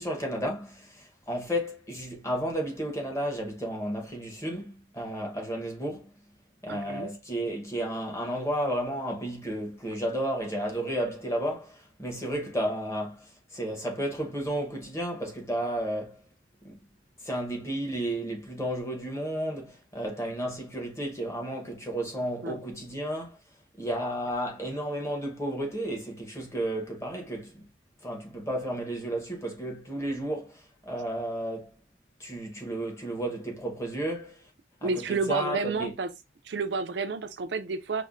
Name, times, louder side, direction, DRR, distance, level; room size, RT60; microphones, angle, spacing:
voice 1, 0.0-6.1 6.6-16.2 16.6-16.8 17.2-23.4 23.8-27.6 28.0-31.7 32.2-34.4 34.8-35.9, right 1 dB, 15° left, 0.9 m, -32 dB
voice 2, 6.7-7.1 22.4-22.6 34.8-36.1 36.4-38.1, right 4 dB, 65° right, 0.4 m, -30 dB
5.3 x 2.1 x 2.5 m
head